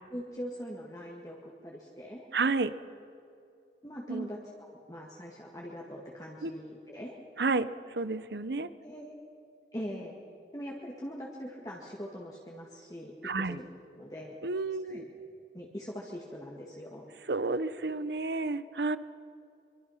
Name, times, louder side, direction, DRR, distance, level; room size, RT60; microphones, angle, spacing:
voice 1, 0.1-2.3 3.8-7.2 8.8-9.1 9.7-10.2 10.5-13.6 13.9-14.4 14.8-15.0 15.5-17.1, equal, 20° left, -3 dB, 1.9 m, -42 dB
voice 2, 2.3-2.7 4.1-4.3 6.4-6.5 7.4-8.7 13.2-13.6 14.4-15.1 17.3-19.0, right 3 dB, 65° right, 14 dB, 0.8 m, -31 dB
24.5 x 24.0 x 5.8 m, 2.6 s
head